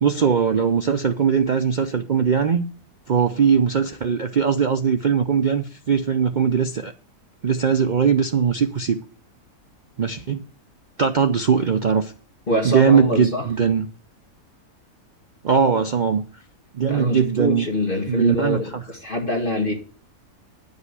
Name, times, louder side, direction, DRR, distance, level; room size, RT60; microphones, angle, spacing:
voice 1, 0.0-2.6 3.1-6.9 7.4-9.0 10.0-10.4 11.0-12.1 12.6-13.9 15.4-16.2 16.7-17.7 18.1-18.8, right 6 dB, 60° right, 7 dB, 0.4 m, -20 dB
voice 2, 12.5-13.5 16.9-19.7, left 1 dB, 35° left, 1 dB, 2.1 m, -24 dB
10.0 x 5.3 x 8.0 m, 0.41 s
omnidirectional pair, 1.6 m